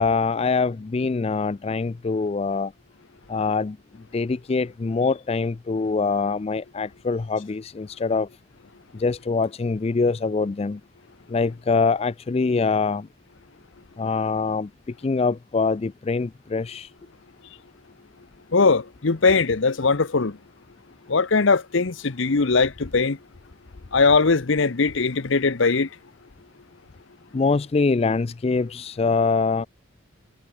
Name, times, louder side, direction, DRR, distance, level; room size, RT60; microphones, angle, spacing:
voice 1, 0.0-2.7 3.3-3.8 4.1-8.3 8.9-10.8 11.3-13.1 14.0-14.7 15.0-16.9 27.3-29.7, left 4 dB, 30° left, 0.3 m, -24 dB
voice 2, 18.5-20.4 21.1-23.2 23.9-25.9, left 4 dB, 60° left, 0.8 m, -20 dB
head